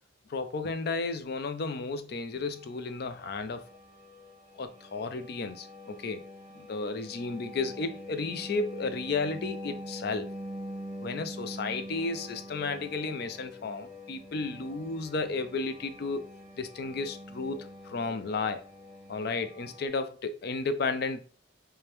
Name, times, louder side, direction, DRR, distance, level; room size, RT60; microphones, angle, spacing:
voice 1, 0.3-3.6 4.6-6.2 6.6-10.3 11.0-16.3 16.6-18.6 19.1-21.2, left 3 dB, 60° left, 0.5 m, -33 dB
sound 1, 2.5-19.9, equal, 20° right, 0.9 m, -45 dB
4.9 x 2.2 x 3.0 m
head